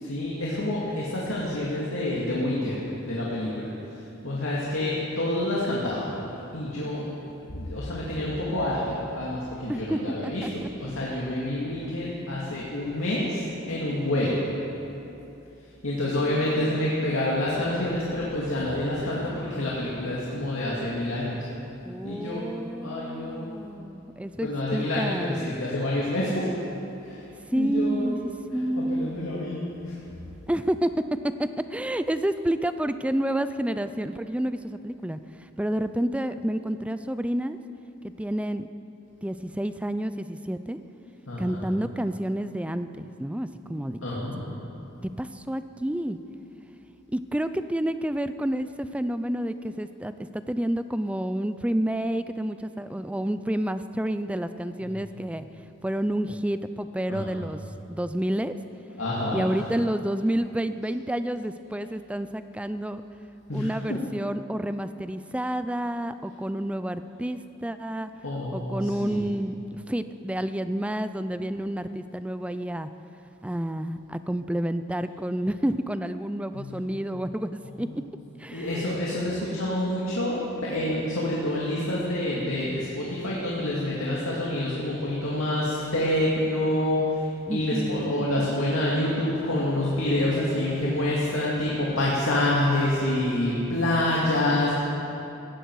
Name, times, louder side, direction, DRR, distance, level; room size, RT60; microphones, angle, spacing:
voice 1, 0.1-2.8 3.1-3.7 4.2-6.2 6.5-7.1 7.5-14.4 15.8-21.4 22.0-22.5 22.8-23.5 24.4-26.5 27.0-27.2 27.5-28.1 28.5-29.9 41.3-41.7 43.7-44.6 54.8-54.9 57.1-57.3 59.0-59.6 63.5-63.7 66.2-66.3 68.2-69.2 76.5-77.0 77.6-78.0 78.5-94.8, left 1 dB, 85° left, -6 dB, 2.3 m, -27 dB
voice 2, 9.7-10.7 16.0-17.0 21.8-25.6 27.5-28.2 28.5-29.1 30.5-30.9 31.4-35.2 35.6-37.6 38.0-38.7 39.2-40.8 41.4-44.0 45.2-46.2 47.1-55.5 55.8-57.6 57.9-58.6 59.3-63.0 63.5-68.1 68.5-72.9 73.4-77.9 78.4-79.0 87.5-88.5, right 1 dB, 5° right, 11 dB, 0.4 m, -29 dB
17.0 x 15.0 x 4.8 m, 2.9 s
head